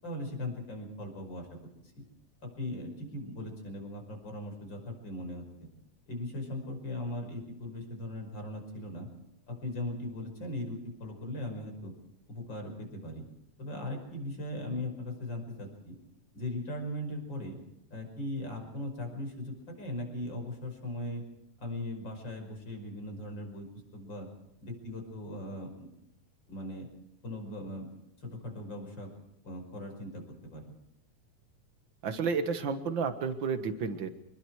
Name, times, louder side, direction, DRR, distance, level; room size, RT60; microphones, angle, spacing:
voice 1, 0.0-1.6 2.0-2.1 2.4-5.7 6.1-9.1 9.5-11.9 12.3-13.2 13.6-16.0 16.3-17.6 17.9-21.2 21.6-23.7 23.9-24.3 24.6-25.9 26.5-26.9 27.2-27.9 28.2-29.1 29.4-30.7, left 1 dB, 35° left, 4 dB, 6.1 m, -39 dB
voice 2, 32.0-34.1, right 5 dB, 45° right, 9 dB, 1.7 m, -31 dB
26.5 x 21.5 x 4.8 m, 0.83 s
omnidirectional pair, 3.7 m